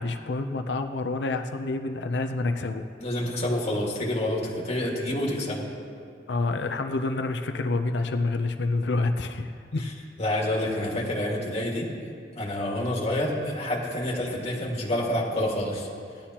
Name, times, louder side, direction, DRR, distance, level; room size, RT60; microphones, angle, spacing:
voice 1, 0.0-2.9 6.3-9.9, left 3 dB, 70° left, 6 dB, 0.6 m, -28 dB
voice 2, 3.0-5.7 10.2-11.9 12.3-15.9, left 1 dB, 35° left, -4 dB, 1.9 m, -28 dB
17.5 x 11.5 x 2.9 m, 2.3 s
head